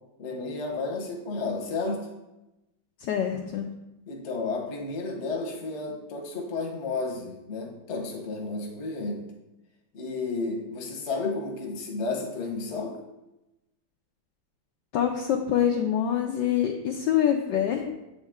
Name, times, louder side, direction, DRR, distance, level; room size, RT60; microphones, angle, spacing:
voice 1, 0.2-2.0 4.1-9.2 9.9-12.9, left 3 dB, 45° left, 1 dB, 1.0 m, -32 dB
voice 2, 3.0-3.7 14.9-17.9, left 9 dB, 75° left, 2 dB, 1.0 m, -25 dB
7.9 x 4.2 x 3.6 m, 0.97 s
omnidirectional pair, 2.4 m